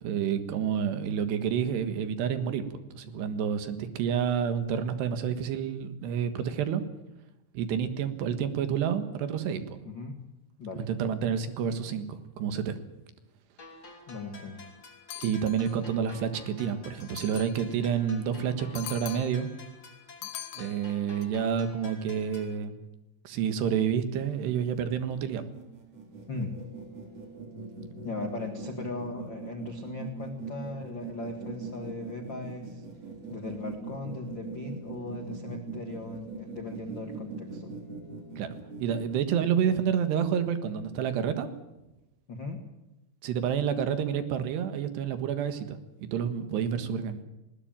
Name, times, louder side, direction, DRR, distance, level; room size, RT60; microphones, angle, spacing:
voice 1, 0.0-6.8 7.5-9.8 10.8-12.8 15.2-19.5 20.6-22.8 23.2-25.5 38.4-38.5 38.8-41.5 43.2-47.2, right 8 dB, 70° right, 10 dB, 3.5 m, -29 dB
voice 2, 9.8-10.2 10.6-10.9 14.1-14.6 26.3-26.6 28.0-32.8 33.3-37.7 42.3-42.6, left 3 dB, 55° left, 4 dB, 1.2 m, -38 dB
sound 1, 13.6-22.6, left 3 dB, 25° left, 2.8 m, -50 dB
sound 2, 15.1-15.9 17.0-17.8 18.7-19.5 20.2-21.2, left 15 dB, 75° left, 2.7 m, -42 dB
sound 3, 24.2-39.3, right 4 dB, 35° right, 3.9 m, -41 dB
20.0 x 19.5 x 9.0 m, 0.95 s
omnidirectional pair, 5.4 m